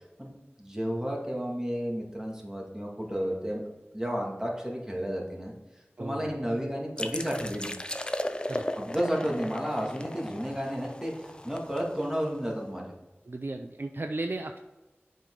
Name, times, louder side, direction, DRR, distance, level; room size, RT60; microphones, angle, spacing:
voice 1, 0.6-3.6 3.9-5.5 6.0-7.7 8.8-12.9, equal, 15° right, -1 dB, 2.0 m, -32 dB
voice 2, 6.0-6.3 8.5-8.6 13.3-14.6, right 2 dB, 55° right, 5 dB, 0.4 m, -35 dB
sound 1, 7.0-12.5, left 1 dB, 20° left, 0.6 m, -36 dB
7.3 x 5.3 x 3.8 m, 1.1 s
wide cardioid pair, 45°, 4 cm